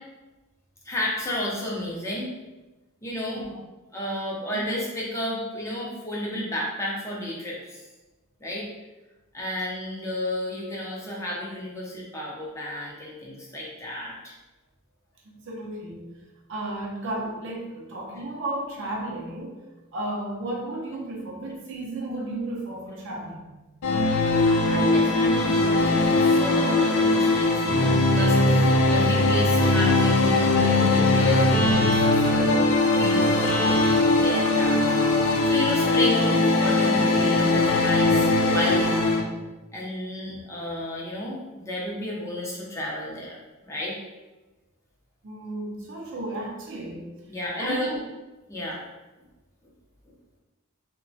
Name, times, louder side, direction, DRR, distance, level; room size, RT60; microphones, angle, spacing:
voice 1, 0.8-2.3 3.0-3.4 3.9-7.8 8.4-8.7 9.3-14.3 24.7-34.8 35.1-39.0 39.7-43.4 43.6-44.0 47.3-47.9 48.5-48.8, left 1 dB, 15° left, -4 dB, 0.5 m, -32 dB
voice 2, 15.2-16.1 16.5-19.6 19.9-23.5 45.2-47.1 47.6-48.1, right 1 dB, 60° right, -1 dB, 0.5 m, -33 dB
sound 1, 23.8-39.2, left 2 dB, 90° left, 0.5 m, -20 dB
2.8 x 2.1 x 2.6 m, 1.1 s
head